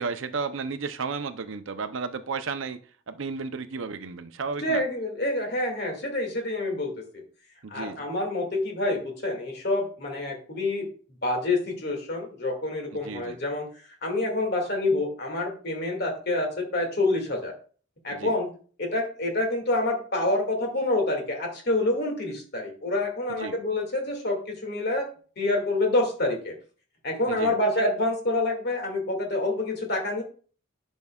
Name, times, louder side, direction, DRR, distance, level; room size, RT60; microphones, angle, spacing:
voice 1, 0.0-2.8 3.1-4.8 7.6-8.1 12.9-13.4 18.1-18.3 23.4-23.6 27.3-27.6, right 4 dB, 75° right, 11 dB, 0.6 m, -33 dB
voice 2, 4.6-7.2 7.7-10.9 11.2-13.7 14.0-17.5 18.0-18.5 18.8-25.1 25.4-26.6 27.0-30.2, left 2 dB, 55° left, 2 dB, 2.1 m, -27 dB
10.5 x 5.4 x 2.3 m, 0.41 s
head